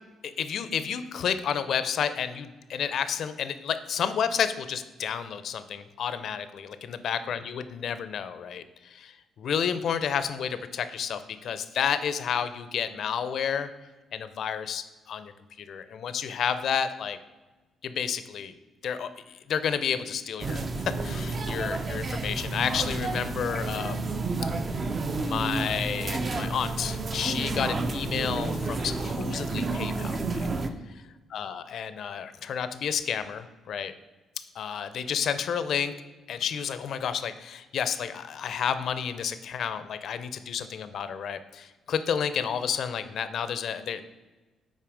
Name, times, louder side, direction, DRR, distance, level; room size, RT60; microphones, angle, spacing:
voice 1, 0.2-8.6 8.9-13.7 14.1-15.3 15.6-17.2 17.8-18.5 18.8-24.1 25.2-30.4 31.3-33.9 34.6-35.9 36.3-44.1, left 7 dB, 65° left, 12 dB, 0.4 m, -31 dB
sound 1, 20.4-30.7, right 3 dB, 40° right, 0.6 m, -30 dB
5.9 x 4.3 x 4.9 m, 1.2 s
cardioid pair, 90°, 0 cm